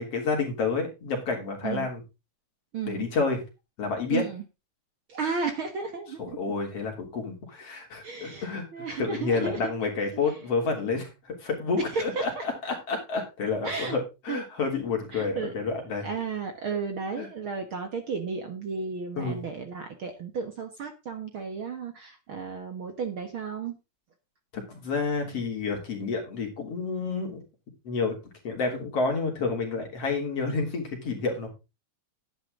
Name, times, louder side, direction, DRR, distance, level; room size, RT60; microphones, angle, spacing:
voice 1, 0.0-2.0 2.9-3.4 3.8-4.2 6.2-16.1 17.2-17.3 19.2-19.4 24.5-27.4 27.8-28.2 28.4-31.5, left 4 dB, 50° left, 2 dB, 4.0 m, -29 dB
voice 2, 2.7-3.1 4.1-4.4 5.1-6.5 8.0-9.6 10.1-10.3 11.9-12.4 13.6-14.0 14.3-14.4 15.1-15.5 16.0-23.8, right 5 dB, 50° right, 6 dB, 1.9 m, -33 dB
11.0 x 10.5 x 3.8 m, 0.27 s
omnidirectional pair, 3.5 m